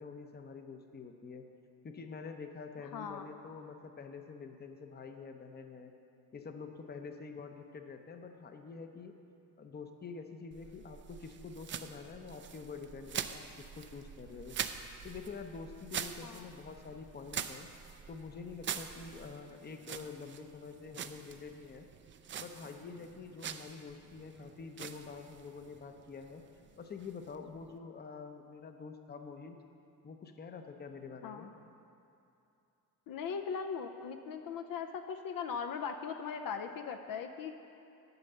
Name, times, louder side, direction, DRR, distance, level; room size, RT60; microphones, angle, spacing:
voice 1, 0.0-1.4 1.8-5.9 6.3-9.1 9.6-14.6 15.0-17.7 18.1-21.9 22.4-26.4 26.8-29.6 30.0-31.5, left 5 dB, 25° left, 6 dB, 0.7 m, -47 dB
voice 2, 2.8-3.3 16.2-16.5 31.2-31.5 33.1-37.5, left 6 dB, 60° left, 6 dB, 0.7 m, -39 dB
sound 1, 10.5-27.8, right 8 dB, 35° right, 0.4 m, -45 dB
11.0 x 5.2 x 6.8 m, 2.7 s
cardioid pair, 100°, 38 cm